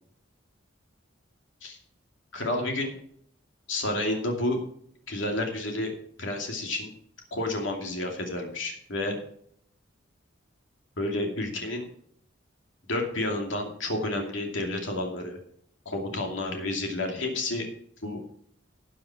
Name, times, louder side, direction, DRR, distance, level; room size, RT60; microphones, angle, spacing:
voice 1, 2.3-2.9 3.7-4.6 5.1-5.9 6.2-6.9 7.3-9.2 11.0-11.9 12.9-15.4 15.9-17.7 18.0-18.2, left 2 dB, 75° left, 2 dB, 2.6 m, -30 dB
13.0 x 7.7 x 4.9 m, 0.64 s
head